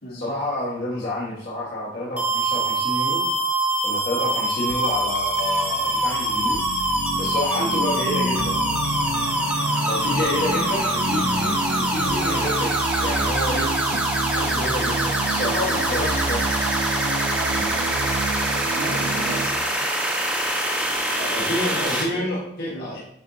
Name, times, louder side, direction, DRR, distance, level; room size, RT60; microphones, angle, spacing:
voice 1, 0.1-3.2 3.8-6.6 7.1-8.6 9.9-13.7 14.3-16.5 21.5-23.0, left 1 dB, 55° left, -7 dB, 1.7 m, -29 dB
sound 1, 2.2-22.0, right 1 dB, 10° right, 1.2 m, -24 dB
sound 2, 4.7-19.5, right 3 dB, 70° right, 0.6 m, -29 dB
voice 2, 18.7-19.9 21.2-22.3 22.7-22.9, left 1 dB, 80° left, -5 dB, 2.5 m, -36 dB
8.7 x 4.6 x 2.8 m, 0.74 s
head